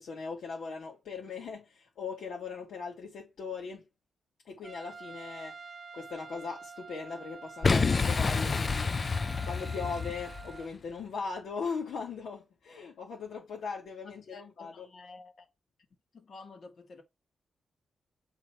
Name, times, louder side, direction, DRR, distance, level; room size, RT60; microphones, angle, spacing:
voice 1, 0.0-3.8 4.5-5.6 5.9-9.0 9.5-14.9, left 5 dB, 80° left, 2.1 m, -39 dB
Trumpet, 4.6-10.7, right 5 dB, 35° right, 0.6 m, -47 dB
Boom, 7.6-10.6, left 4 dB, 30° left, 0.3 m, -28 dB
voice 2, 14.2-15.5 16.1-17.0, left 3 dB, 50° left, 1.7 m, -50 dB
7.6 x 3.8 x 4.6 m
wide cardioid pair, 130°, 0 cm